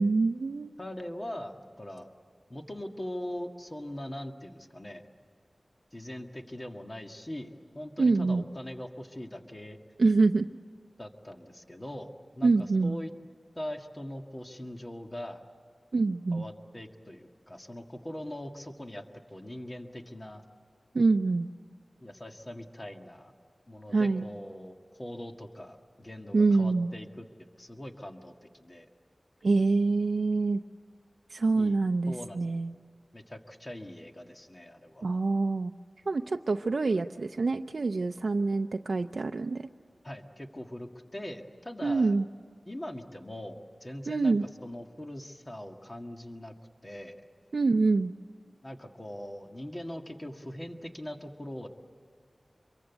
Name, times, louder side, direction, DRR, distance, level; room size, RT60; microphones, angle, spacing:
voice 1, 0.0-0.7 8.0-8.4 10.0-10.5 12.4-13.0 15.9-16.5 20.9-21.5 23.9-24.3 26.3-26.9 29.4-30.6 31.3-32.7 35.0-35.7 36.1-39.6 41.8-42.2 44.1-44.4 47.5-48.1, right 3 dB, 75° right, 5 dB, 0.6 m, -25 dB
voice 2, 0.8-2.1 2.5-5.0 5.9-9.8 11.0-13.1 13.6-15.4 16.3-19.0 19.3-20.4 22.0-23.3 23.7-27.3 27.6-28.9 31.6-31.8 32.1-32.4 33.1-35.0 40.0-42.2 42.7-46.5 46.8-47.3 48.6-51.7, left 1 dB, 25° left, 4 dB, 1.9 m, -41 dB
26.0 x 23.0 x 8.2 m, 2.1 s
wide cardioid pair, 75°, 0 cm